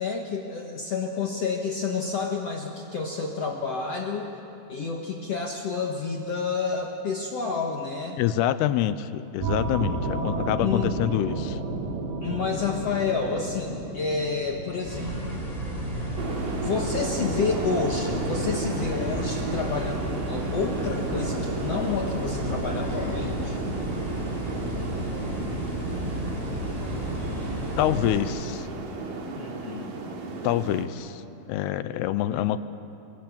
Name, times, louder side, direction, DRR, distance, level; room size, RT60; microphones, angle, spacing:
voice 1, 0.0-4.3 4.7-8.2 10.6-10.9 12.2-15.4 16.5-23.6 29.4-29.9, left 5 dB, 55° left, 1 dB, 2.0 m, -29 dB
voice 2, 8.2-11.6 27.8-28.7 30.4-31.2 31.5-32.6, left 12 dB, 85° left, 13 dB, 2.8 m, -26 dB
sound 1, 9.4-17.7, right 2 dB, 85° right, 4.4 m, -33 dB
sound 2, 14.8-28.2, equal, 10° right, 6.4 m, -32 dB
sound 3, 16.2-30.9, right 3 dB, 60° right, 3.9 m, -33 dB
27.5 x 22.0 x 8.7 m, 2.9 s
omnidirectional pair, 4.6 m